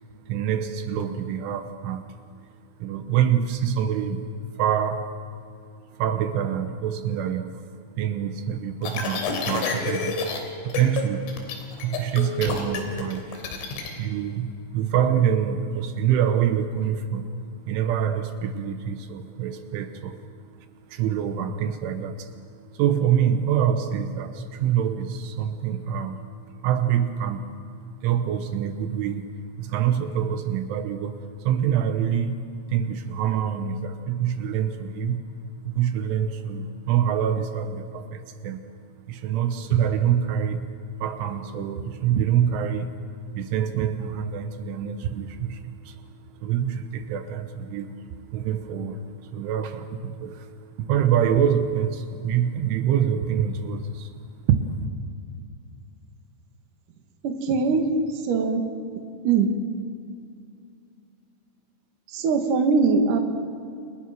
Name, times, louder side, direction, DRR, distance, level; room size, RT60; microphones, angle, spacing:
voice 1, 0.2-2.1 2.8-27.5 27.8-38.6 39.1-40.7 41.0-54.2 54.5-54.8, right 9 dB, 80° right, 8 dB, 3.5 m, -26 dB
sound 1, 8.8-10.4 10.7-11.0 11.3-13.9, left 5 dB, 85° left, 5.7 m, -29 dB
voice 2, 57.2-57.8 58.3-58.6 59.2-59.5 62.1-63.2, right 4 dB, 50° right, 4 dB, 3.0 m, -21 dB
29.5 x 27.0 x 6.1 m, 2.4 s
omnidirectional pair, 5.6 m